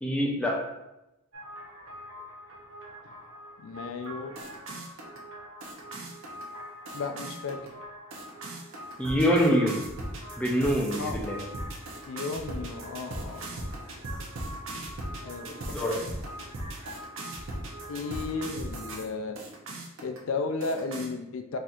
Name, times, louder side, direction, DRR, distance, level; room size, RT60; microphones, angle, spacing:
voice 1, 0.0-0.6 9.0-9.8 10.4-11.4 15.7-15.9, equal, 5° left, -2 dB, 0.4 m, -25 dB
sound 1, 1.3-19.0 19.4-20.2 20.6-21.1, right 1 dB, 65° right, 0.7 m, -39 dB
voice 2, 3.6-4.3 6.9-7.6 11.0-11.2 12.1-13.7 15.2-15.9 17.9-19.4 20.0-21.6, left 4 dB, 70° left, 5 dB, 0.3 m, -34 dB
4.2 x 2.7 x 2.3 m, 0.94 s
head